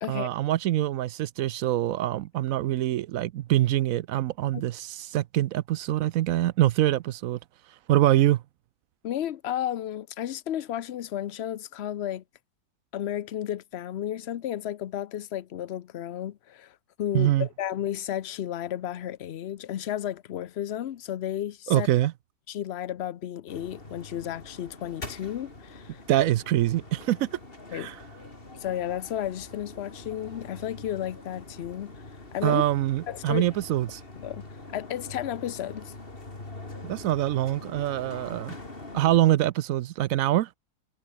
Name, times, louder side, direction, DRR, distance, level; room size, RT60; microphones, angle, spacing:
voice 1, 0.1-7.4 7.9-8.4 17.1-17.5 21.7-22.1 26.1-27.3 27.7-28.0 32.4-34.0 36.8-38.5 38.9-40.5, right 14 dB, 70° right, 0.9 m, -24 dB
voice 2, 9.0-12.2 12.9-21.9 22.5-26.0 27.7-27.9 28.6-31.9 32.3-32.6 33.1-33.5 34.2-34.4 34.7-35.9, left 11 dB, 55° left, 0.7 m, -33 dB
sound 1, 23.5-39.2, left 2 dB, 35° left, 3.7 m, -44 dB
omnidirectional pair, 1.7 m